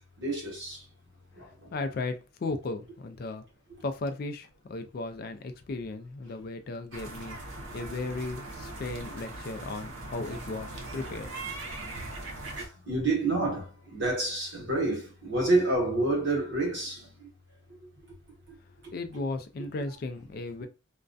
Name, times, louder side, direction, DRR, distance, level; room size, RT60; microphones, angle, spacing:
voice 1, 0.2-0.8 1.4-1.5 12.6-17.3, right 2 dB, 60° right, 1.0 m, -28 dB
voice 2, 1.4-3.5 3.8-11.4 18.6-18.7 18.9-20.7, left 3 dB, 50° left, 0.3 m, -36 dB
sound 1, 6.9-12.7, right 2 dB, 85° right, 0.6 m, -40 dB
2.3 x 2.2 x 2.5 m
head